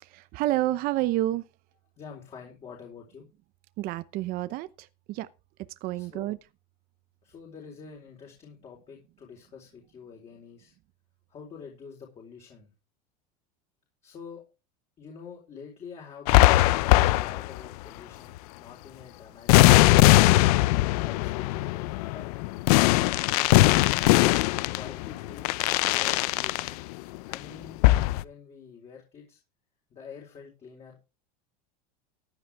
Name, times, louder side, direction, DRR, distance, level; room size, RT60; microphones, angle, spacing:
voice 1, 0.0-1.5 3.8-5.3 5.8-6.4, right 15 dB, 45° right, 0.8 m, -29 dB
voice 2, 2.0-3.3 5.9-6.3 7.2-10.7 11.3-12.7 14.0-14.4 15.0-19.6 21.0-22.3 24.5-26.9 27.3-27.8 28.2-29.4 29.9-31.0, left 6 dB, 30° left, 4.3 m, -47 dB
sound 1, 16.3-17.7 19.5-26.7 27.2-27.5 27.8-28.2, left 18 dB, 70° left, 0.7 m, -20 dB
15.0 x 11.0 x 3.5 m
supercardioid pair, 140°, 20 cm